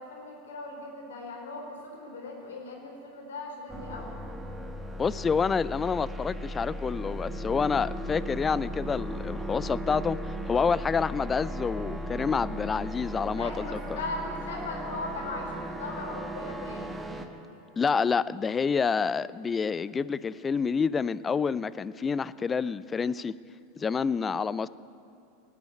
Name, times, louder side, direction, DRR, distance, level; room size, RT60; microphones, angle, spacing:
voice 1, 0.0-4.2 13.3-17.0, left 2 dB, 70° left, 0 dB, 4.2 m, -38 dB
sound 1, 3.7-17.3, equal, 5° right, 1.3 m, -37 dB
voice 2, 5.0-10.2 10.5-14.0 17.8-23.3 23.8-24.7, left 5 dB, 20° left, 19 dB, 0.4 m, -28 dB
19.0 x 8.5 x 8.3 m, 2.8 s
figure-of-eight pair, 85°, 0 cm